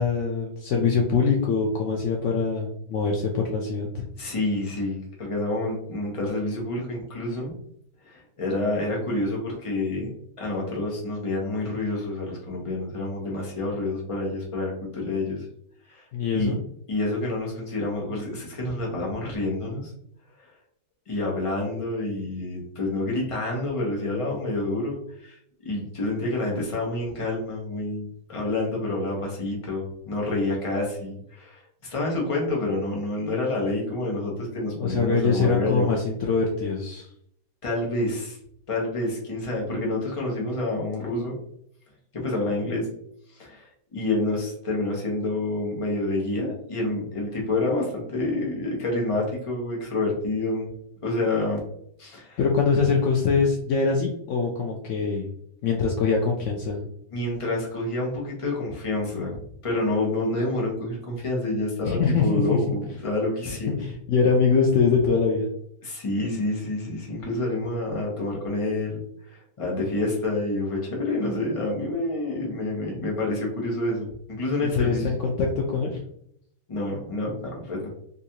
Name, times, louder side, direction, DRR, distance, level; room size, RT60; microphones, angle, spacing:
voice 1, 0.0-4.0 16.1-16.6 34.8-37.1 52.4-55.3 55.6-56.9 61.8-62.7 63.8-65.5 74.7-76.0, left 5 dB, 80° left, 0 dB, 0.6 m, -23 dB
voice 2, 4.2-7.5 8.0-10.1 10.4-15.5 15.9-16.0 16.3-16.6 16.9-19.9 20.4-20.5 21.1-35.9 37.6-38.4 38.7-41.4 42.1-42.9 43.3-50.7 51.0-51.6 52.0-52.4 57.1-59.4 59.6-63.9 65.8-75.1 76.7-77.9, left 2 dB, 25° left, -2 dB, 0.7 m, -28 dB
3.9 x 2.4 x 2.8 m, 0.70 s
omnidirectional pair, 1.9 m